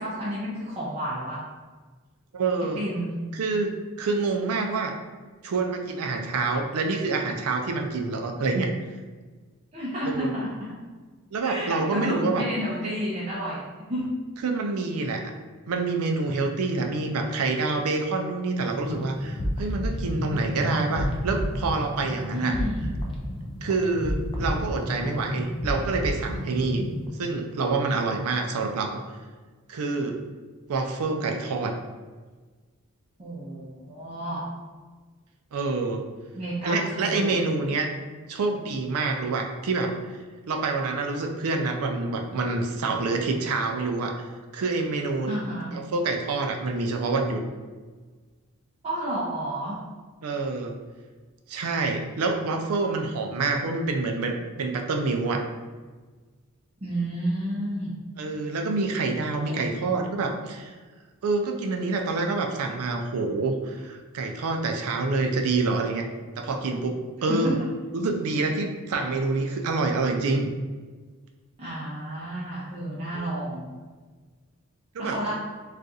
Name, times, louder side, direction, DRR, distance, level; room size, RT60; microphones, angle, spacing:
voice 1, 0.0-1.4 2.7-3.1 9.7-10.7 11.4-13.6 13.9-14.1 22.3-22.8 33.2-34.5 36.3-37.3 45.3-45.7 48.8-49.8 56.8-57.9 59.5-59.8 67.3-67.5 71.6-73.6 75.0-75.3, right 1 dB, 30° right, -9 dB, 0.6 m, -31 dB
voice 2, 2.3-2.8 3.3-3.7 4.0-4.9 5.4-8.7 10.1-10.3 11.3-12.5 14.4-15.2 15.7-22.6 23.6-26.8 27.2-29.0 29.7-30.2 30.7-31.7 35.5-36.0 36.6-37.9 38.3-39.9 40.5-45.4 45.7-47.4 50.2-50.8 51.5-55.4 58.2-60.7 61.2-66.1 66.4-67.6 67.9-70.5 73.1-73.3 74.9-75.3, right 3 dB, 75° right, 4 dB, 0.4 m, -27 dB
sound 1, 18.6-27.1, left 1 dB, 25° left, 0.4 m, -31 dB
2.5 x 2.3 x 4.0 m, 1.4 s
head